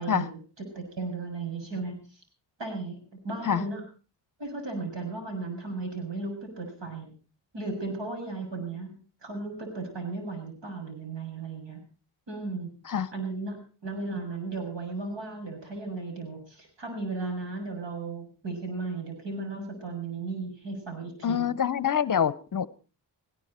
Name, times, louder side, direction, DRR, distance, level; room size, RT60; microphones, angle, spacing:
voice 1, 0.0-2.0 2.6-3.0 3.2-3.8 4.4-7.1 7.5-8.9 9.2-11.8 12.3-12.7 13.1-21.5, right 3 dB, 75° right, 4 dB, 6.9 m, -35 dB
voice 2, 21.2-22.7, left 8 dB, 45° left, 18 dB, 0.7 m, -26 dB
19.0 x 17.0 x 4.3 m, 0.37 s
wide cardioid pair, 90°, 44 cm